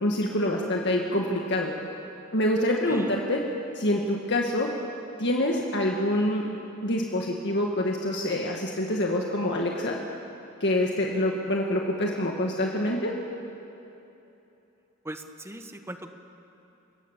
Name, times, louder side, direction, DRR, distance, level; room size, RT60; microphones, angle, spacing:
voice 1, 0.0-1.7 2.3-3.4 3.7-4.7 5.2-6.4 6.8-10.0 10.6-13.1, left 1 dB, 60° left, 0 dB, 1.9 m, -26 dB
voice 2, 2.9-3.2 15.0-16.1, right 1 dB, 15° right, 6 dB, 1.4 m, -39 dB
29.5 x 18.0 x 7.4 m, 3.0 s
head